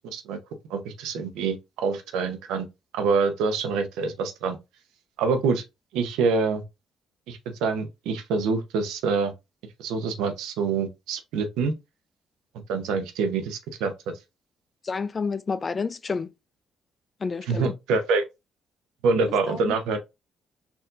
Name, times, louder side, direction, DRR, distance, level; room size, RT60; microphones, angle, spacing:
voice 1, 0.7-2.7 2.9-4.6 5.2-5.6 5.9-6.6 7.3-9.3 9.8-11.7 12.7-13.9 17.5-18.2 19.0-20.0, right 4 dB, 85° right, 0.7 m, -26 dB
voice 2, 14.8-16.3 17.2-17.7 19.5-19.8, left 5 dB, 40° left, 0.4 m, -29 dB
4.5 x 2.7 x 2.5 m
supercardioid pair, 70°, 0 cm